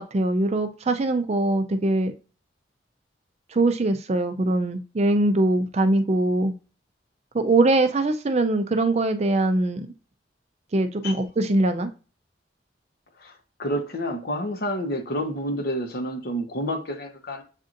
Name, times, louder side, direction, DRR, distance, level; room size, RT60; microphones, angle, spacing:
voice 1, 0.0-2.1 3.5-6.5 7.3-9.9 10.7-11.9, right 2 dB, 35° right, 0.4 m, -22 dB
voice 2, 13.2-17.4, equal, 55° left, 0.9 m, -29 dB
7.2 x 2.6 x 2.5 m
head